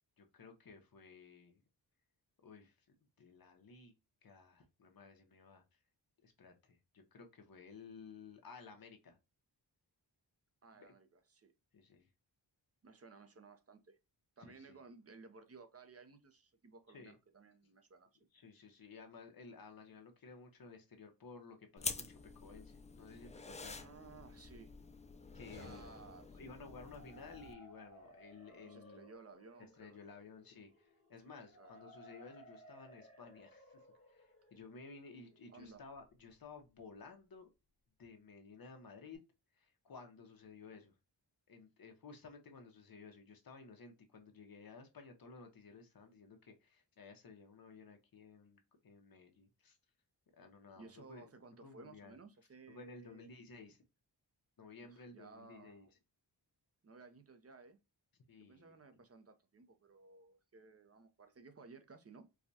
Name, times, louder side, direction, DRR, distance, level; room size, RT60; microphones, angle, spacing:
voice 1, 0.2-1.6 2.4-3.9 4.2-5.6 6.2-9.2 10.7-10.9 11.7-12.1 14.5-14.8 16.9-17.1 18.3-23.8 25.3-26.0 26.3-29.0 29.8-37.5 38.0-39.2 39.8-40.9 41.5-49.8 50.4-51.3 51.6-52.2 52.7-53.8 54.6-55.9 58.3-58.8, left 4 dB, 55° left, 1.0 m, -55 dB
voice 2, 10.6-11.5 12.8-14.0 14.4-18.3 23.8-24.7 25.5-26.5 28.6-30.1 31.2-32.0 35.5-35.8 50.8-53.3 54.8-55.9 56.8-57.8 58.4-62.3, right 4 dB, 35° right, 0.7 m, -58 dB
sound 1, 21.8-27.5, left 3 dB, 20° left, 0.3 m, -47 dB
sound 2, 26.7-36.4, equal, 35° left, 1.7 m, -61 dB
4.6 x 2.3 x 2.6 m
wide cardioid pair, 140°, 43 cm